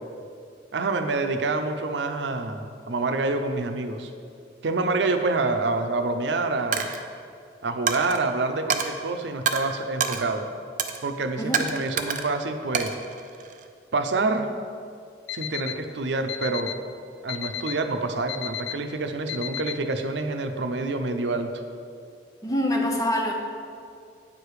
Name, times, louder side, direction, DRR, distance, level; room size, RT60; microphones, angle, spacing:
voice 1, 0.7-4.1 4.6-6.9 7.6-10.5 11.0-12.9 13.9-14.5 15.3-16.7 17.2-21.5, right 3 dB, 90° right, 7 dB, 0.6 m, -27 dB
Coin (dropping), 6.7-7.0 7.9-8.2 8.7-8.9 9.5-9.6 10.0-10.2 10.8-11.0 11.5-12.3 12.7-13.7, right 6 dB, 45° right, 0.4 m, -27 dB
Alarm, 15.3-15.7 16.3-16.7 17.3-17.7 18.3-18.7 19.3-19.7, left 11 dB, 80° left, 0.4 m, -32 dB
voice 2, 22.4-23.3, left 1 dB, 20° left, 1 dB, 0.8 m, -25 dB
9.0 x 4.9 x 4.8 m, 2.4 s
head